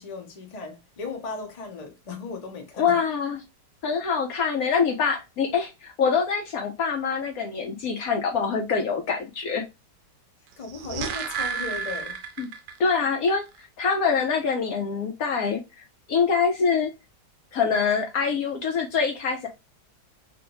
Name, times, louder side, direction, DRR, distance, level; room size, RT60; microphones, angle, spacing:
voice 1, 0.0-3.0 8.4-8.5 10.6-12.2, left 4 dB, 35° left, 0.6 m, -36 dB
voice 2, 2.8-3.4 3.8-9.6 12.4-12.5 12.8-15.6 16.1-16.9 17.5-19.5, left 5 dB, 65° left, 1.0 m, -25 dB
sound 1, 10.5-13.0 13.3-13.4, right 6 dB, 75° right, 1.2 m, -32 dB
3.4 x 2.5 x 2.9 m
omnidirectional pair, 1.9 m